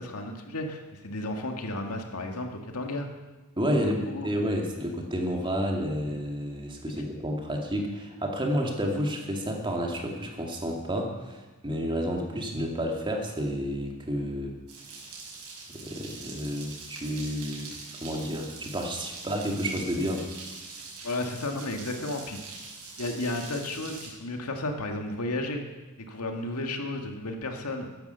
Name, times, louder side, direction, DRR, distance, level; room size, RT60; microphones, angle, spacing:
voice 1, 0.0-3.1 3.8-4.3 21.0-22.4 23.0-25.6 26.1-27.9, left 2 dB, 85° left, 3 dB, 2.0 m, -33 dB
voice 2, 3.6-14.6 15.7-17.6 18.0-20.3, equal, 20° right, 1 dB, 2.2 m, -30 dB
sound 1, 14.7-24.1, right 4 dB, 80° right, 5.6 m, -43 dB
14.5 x 10.5 x 6.9 m, 1.2 s
head